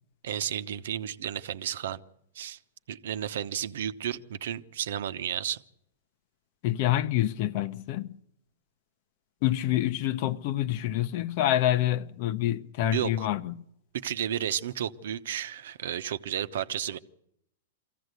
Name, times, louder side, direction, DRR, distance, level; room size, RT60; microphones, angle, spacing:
voice 1, 0.2-2.0 2.3-2.6 2.9-5.6 12.8-13.3 13.9-17.0, right 10 dB, 75° right, 1.0 m, -32 dB
voice 2, 6.6-8.1 9.4-13.6, left 13 dB, 50° left, 0.9 m, -27 dB
23.5 x 15.5 x 8.2 m
hypercardioid pair, 130°, 0 cm